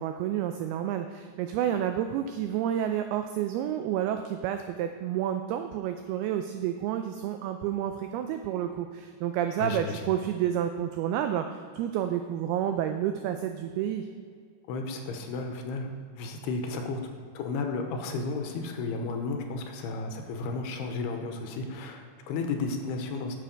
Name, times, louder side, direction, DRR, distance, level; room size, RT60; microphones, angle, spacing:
voice 1, 0.0-14.1, right 10 dB, 85° right, 7 dB, 2.2 m, -30 dB
voice 2, 9.6-10.0 14.7-17.0 17.3-23.4, left 3 dB, 80° left, 4 dB, 2.8 m, -33 dB
11.0 x 7.6 x 5.2 m, 2.1 s
omnidirectional pair, 5.0 m